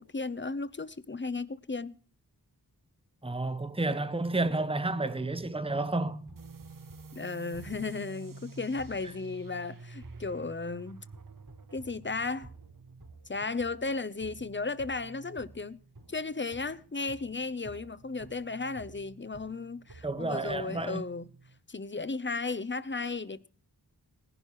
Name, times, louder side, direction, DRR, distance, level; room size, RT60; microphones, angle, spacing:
voice 1, 0.0-2.0 7.2-11.0 11.7-12.5 13.3-15.8 16.1-21.3 21.7-23.5, left 3 dB, 30° left, 0.7 m, -35 dB
voice 2, 3.2-6.3 20.0-21.0, right 2 dB, 15° right, 0.9 m, -31 dB
sound 1, 6.3-21.6, right 3 dB, 70° right, 4.2 m, -53 dB
sound 2, 6.4-13.6, right 4 dB, 55° right, 0.8 m, -49 dB
19.5 x 11.0 x 3.1 m
wide cardioid pair, 50°, 39 cm